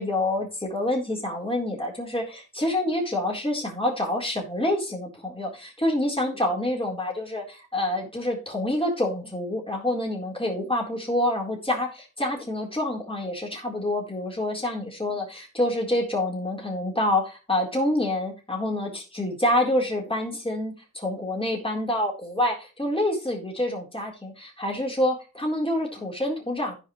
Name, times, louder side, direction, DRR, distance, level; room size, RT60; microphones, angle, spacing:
voice 1, 0.0-2.2 2.6-26.7, left 1 dB, 15° left, -1 dB, 4.0 m, -27 dB
15.5 x 5.2 x 3.2 m, 0.31 s
wide cardioid pair, 70°, 33 cm